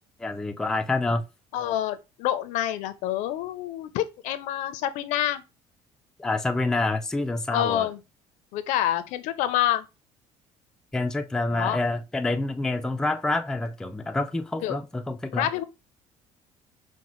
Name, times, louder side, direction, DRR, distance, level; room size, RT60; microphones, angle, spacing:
voice 1, 0.2-1.2 6.2-7.9 10.9-15.5, left 2 dB, 5° left, 0.3 m, -27 dB
voice 2, 1.5-5.4 7.5-8.0 8.5-9.9 11.5-11.8 14.6-14.8 15.3-15.6, left 12 dB, 80° left, 0.5 m, -27 dB
5.2 x 2.1 x 3.0 m
cardioid pair, 150°, 13 cm